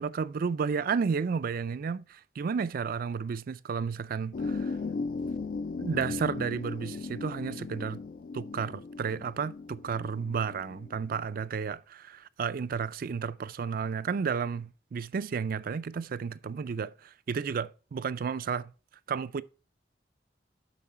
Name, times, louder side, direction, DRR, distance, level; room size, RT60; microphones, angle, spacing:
voice 1, 0.0-4.7 5.8-8.0 8.3-16.9 17.3-18.7 19.1-19.4, right 6 dB, 55° right, 0.4 m, -32 dB
sound 1, 4.3-11.3, left 4 dB, 50° left, 0.4 m, -37 dB
8.4 x 6.2 x 4.3 m
head